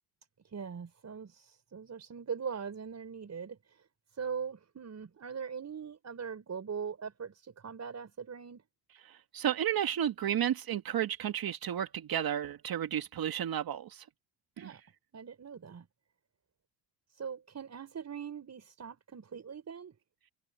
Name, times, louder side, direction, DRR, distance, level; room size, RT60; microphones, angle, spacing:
voice 1, 0.5-3.6 4.2-8.6 14.6-14.8 15.1-15.9 17.1-19.9, right 6 dB, 35° right, 5.8 m, -41 dB
voice 2, 9.3-14.0 14.6-14.7, right 10 dB, 50° right, 2.2 m, -32 dB
supercardioid pair, 85°, 46 cm